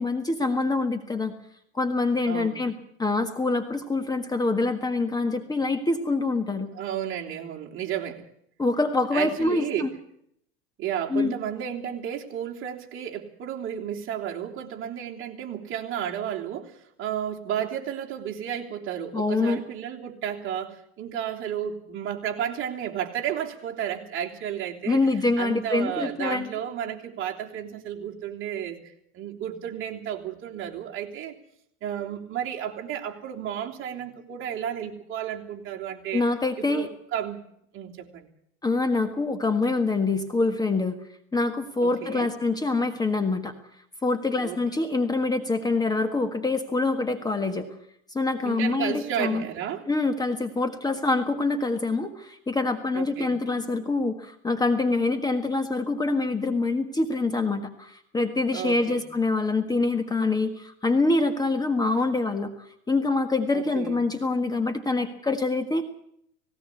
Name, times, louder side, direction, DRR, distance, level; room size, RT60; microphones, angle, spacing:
voice 1, 0.0-1.3 1.7-6.7 8.6-9.9 11.1-11.4 19.1-19.6 24.8-26.5 36.1-36.9 38.6-41.0 41.3-43.5 44.0-47.7 48.1-49.5 49.9-65.9, left 3 dB, 10° left, 7 dB, 1.6 m, -25 dB
voice 2, 2.3-2.7 6.7-8.3 9.1-9.9 10.8-25.1 25.4-28.8 29.1-31.3 31.8-36.2 36.6-37.4 37.7-38.3 41.8-42.3 44.4-44.6 48.4-49.9 52.9-53.4 58.5-59.0 63.5-64.0, right 9 dB, 40° right, 0 dB, 3.3 m, -32 dB
18.5 x 17.5 x 8.4 m, 0.70 s
supercardioid pair, 125°, 33 cm